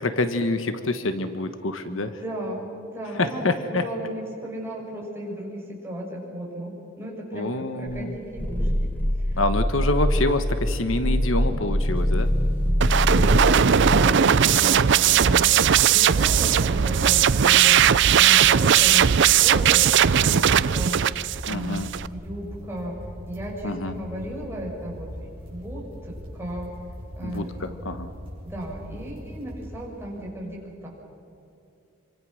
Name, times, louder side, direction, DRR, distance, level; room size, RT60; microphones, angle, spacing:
voice 1, 0.0-2.2 3.2-3.8 7.3-8.2 9.4-12.3 15.1-15.4 21.5-21.9 23.6-24.0 27.2-28.1, left 2 dB, 70° left, 9 dB, 1.2 m, -27 dB
voice 2, 1.9-2.6 2.9-8.9 9.2-9.4 12.8-15.5 15.9-21.0 21.5-26.7 27.2-27.5 28.4-30.9, equal, 10° right, -3 dB, 6.2 m, -35 dB
Growling, 7.9-14.2, equal, 10° left, 1.1 m, -24 dB
sound 1, 11.9-30.3, equal, 25° right, 6.6 m, -40 dB
sound 2, 12.8-22.1, right 9 dB, 60° right, 0.5 m, -18 dB
26.5 x 24.5 x 6.4 m, 2.7 s
head